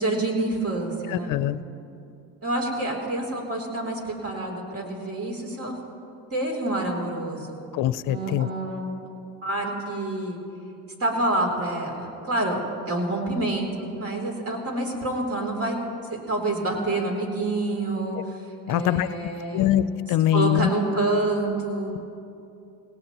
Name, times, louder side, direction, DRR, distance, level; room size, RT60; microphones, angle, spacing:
voice 1, 0.0-1.3 2.4-5.8 6.3-7.6 8.1-8.9 9.4-10.4 11.0-12.6 12.9-15.8 16.1-19.7 20.3-22.2, right 2 dB, 40° right, 1 dB, 3.2 m, -27 dB
voice 2, 1.1-1.6 7.7-8.5 18.7-19.1 19.5-20.7, left 12 dB, 60° left, 15 dB, 0.6 m, -23 dB
18.5 x 17.5 x 3.0 m, 2.7 s
supercardioid pair, 85°, 37 cm